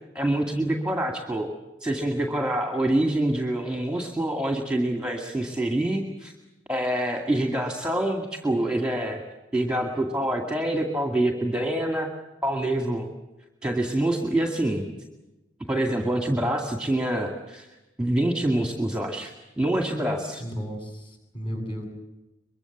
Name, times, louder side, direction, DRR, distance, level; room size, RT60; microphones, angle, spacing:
voice 1, 0.1-1.5 1.8-6.3 6.7-9.2 9.5-12.1 12.4-13.1 13.6-14.8 15.7-17.7 18.0-20.4, right 1 dB, 5° right, 3 dB, 2.1 m, -26 dB
voice 2, 20.4-21.9, equal, 30° left, 2 dB, 7.9 m, -34 dB
23.5 x 23.0 x 7.2 m, 1.0 s
head